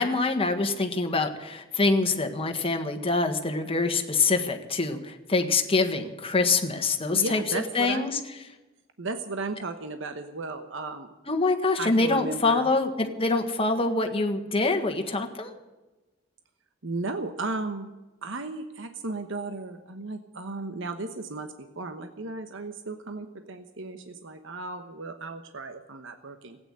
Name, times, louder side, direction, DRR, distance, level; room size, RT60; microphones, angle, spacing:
voice 1, 0.0-7.4 7.7-8.2 11.3-15.5, left 3 dB, 30° left, 5 dB, 1.6 m, -25 dB
voice 2, 7.1-8.1 9.0-11.1 11.8-12.7 16.8-17.9 18.2-26.6, right 3 dB, 65° right, 7 dB, 1.1 m, -35 dB
16.0 x 9.1 x 9.8 m, 1.1 s
head